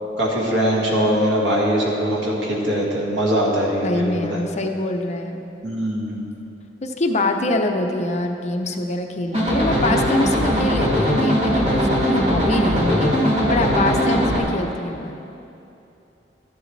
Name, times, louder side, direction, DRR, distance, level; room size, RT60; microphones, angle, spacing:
voice 1, 0.2-4.4 5.6-6.2, equal, 90° right, -3 dB, 2.0 m, -22 dB
voice 2, 3.8-5.4 6.8-15.1, left 2 dB, 40° left, 4 dB, 0.7 m, -24 dB
sound 1, 9.3-14.4, equal, 35° right, 2.2 m, -20 dB
13.0 x 10.5 x 3.3 m, 2.8 s
head